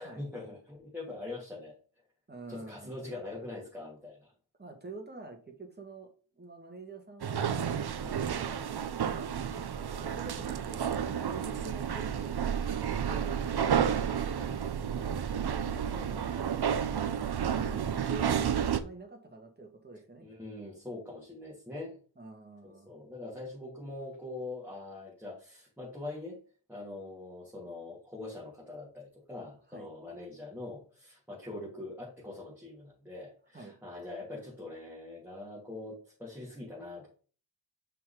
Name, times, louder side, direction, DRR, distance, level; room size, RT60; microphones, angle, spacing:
voice 1, 0.0-1.8 2.5-4.3 8.0-8.3 13.7-14.1 17.6-18.0 20.2-21.9 22.6-26.4 26.7-37.1, left 2 dB, 5° right, -7 dB, 2.7 m, -43 dB
voice 2, 2.3-2.9 4.6-6.1 6.3-7.6 8.1-9.3 9.6-10.9 11.1-13.4 14.0-15.2 15.5-17.1 17.5-20.2 22.2-22.9 29.7-29.9 33.5-33.7, right 2 dB, 20° right, 3 dB, 1.6 m, -48 dB
sound 1, 7.2-18.8, right 8 dB, 55° right, 0.6 m, -31 dB
5.8 x 4.0 x 5.0 m, 0.39 s
wide cardioid pair, 95°, 46 cm